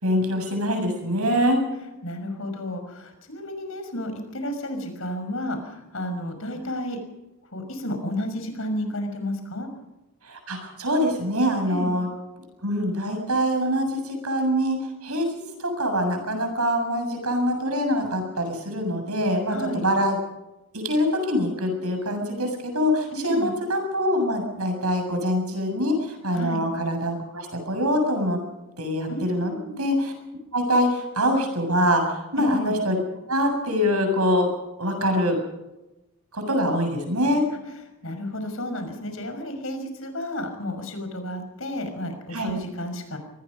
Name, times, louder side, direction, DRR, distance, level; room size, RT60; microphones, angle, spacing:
voice 1, 0.0-1.6 10.2-12.1 12.6-15.3 15.6-20.2 20.7-28.4 28.8-30.1 30.5-33.0 33.3-34.5 34.8-35.4 36.3-37.4 42.3-42.5, equal, 90° right, 5 dB, 7.4 m, -24 dB
voice 2, 2.0-7.0 7.5-9.7 11.6-11.9 19.5-19.8 23.1-23.5 26.3-26.6 29.1-29.7 32.4-32.7 38.0-43.2, left 1 dB, 70° left, 6 dB, 6.0 m, -31 dB
25.0 x 19.5 x 5.5 m, 0.97 s
head